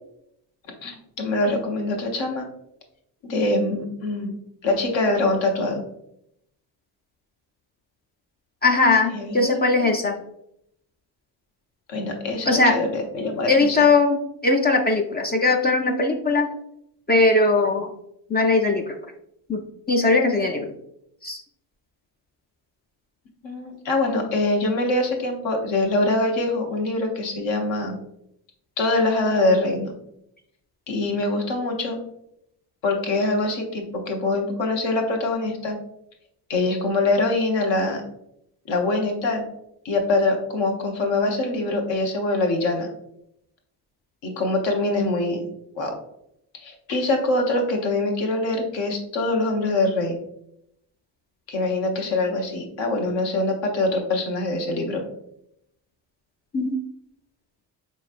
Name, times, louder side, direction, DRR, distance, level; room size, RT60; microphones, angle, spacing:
voice 1, 0.8-2.4 3.2-4.4 4.6-5.8 9.1-9.9 11.9-13.8 23.4-28.0 28.8-29.9 30.9-32.0 32.8-35.8 36.5-38.0 38.7-39.4 39.8-42.9 44.2-45.4 45.8-45.9 46.6-50.2 51.5-55.0, left 2 dB, 70° left, 2 dB, 1.0 m, -24 dB
voice 2, 8.6-10.2 12.5-12.8 13.5-16.5 17.1-17.9 18.3-18.9 19.5-20.7 21.2-21.4 56.5-56.8, left 3 dB, 25° left, 2 dB, 0.4 m, -20 dB
4.5 x 3.1 x 2.4 m, 0.77 s
cardioid pair, 80°, 46 cm